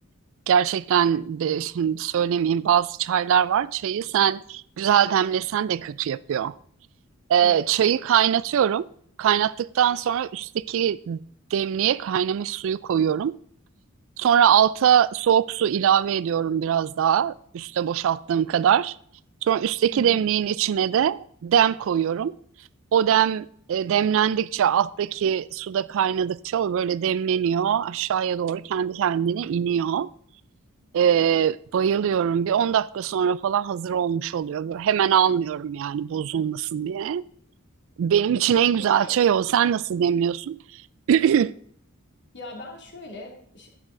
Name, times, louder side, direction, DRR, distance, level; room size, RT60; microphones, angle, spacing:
voice 1, 0.5-6.5 7.3-8.8 9.2-11.2 11.5-13.3 14.2-19.0 19.4-22.3 22.9-30.1 30.9-37.2 38.0-40.6 41.1-41.5, right 9 dB, 65° right, 0.3 m, -22 dB
voice 2, 19.9-20.2 38.8-39.1 42.3-43.7, left 2 dB, 55° left, 2.5 m, -40 dB
10.5 x 8.3 x 3.8 m
head